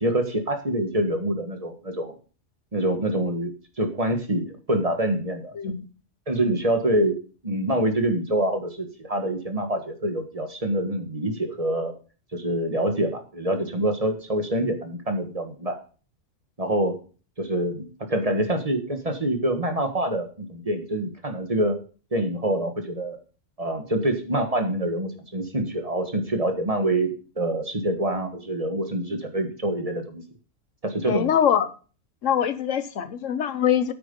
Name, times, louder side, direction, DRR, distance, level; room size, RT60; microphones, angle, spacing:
voice 1, 0.0-2.1 2.7-3.5 3.8-5.6 6.3-7.2 7.4-11.9 12.3-15.8 16.6-17.0 17.4-21.8 22.1-23.2 23.6-27.1 27.4-30.2 30.8-31.3, right 1 dB, 30° right, 6 dB, 1.5 m, -26 dB
voice 2, 5.5-5.9 31.1-31.7 32.2-33.9, left 9 dB, 85° left, 13 dB, 1.3 m, -23 dB
8.8 x 8.7 x 5.3 m, 0.38 s
omnidirectional pair, 1.3 m